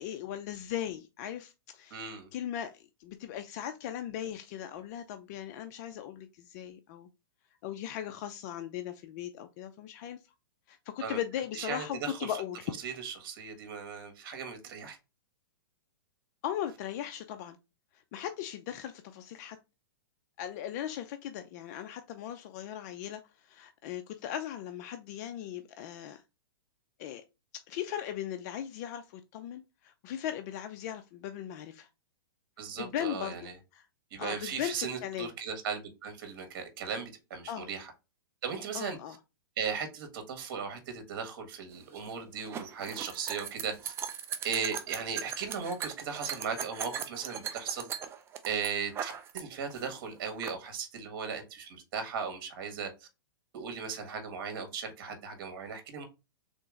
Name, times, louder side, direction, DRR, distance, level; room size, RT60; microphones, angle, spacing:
voice 1, 0.0-7.1 7.6-10.2 10.7-12.7 16.4-17.6 17.9-19.6 20.4-26.2 27.0-27.2 27.7-31.9 32.8-33.8 34.2-35.3 37.5-37.7 38.7-39.2, left 10 dB, 40° left, 0.4 m, -38 dB
voice 2, 1.9-2.3 11.0-11.2 11.5-12.3 12.8-15.0 32.6-33.5 34.1-37.9 38.4-39.0 39.6-43.9 44.4-47.9 48.4-53.1 53.5-56.0, right 6 dB, 55° right, 1.5 m, -37 dB
sound 1, 41.7-49.4 49.7-50.5, right 8 dB, 20° right, 0.5 m, -39 dB
3.8 x 2.8 x 3.7 m
hypercardioid pair, 135°, 13 cm